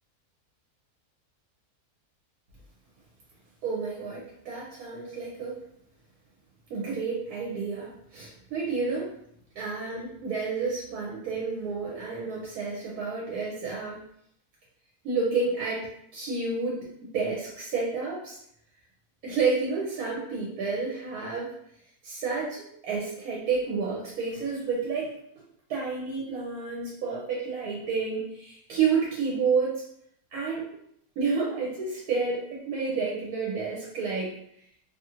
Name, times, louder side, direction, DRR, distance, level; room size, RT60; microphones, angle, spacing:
voice 1, 3.6-5.6 6.7-9.1 9.5-14.0 15.0-18.4 19.2-21.5 22.0-25.4 25.7-29.8 30.3-30.7 31.2-34.4, right 4 dB, 75° right, -3 dB, 1.1 m, -30 dB
2.8 x 2.4 x 2.8 m, 0.72 s
omnidirectional pair, 1.6 m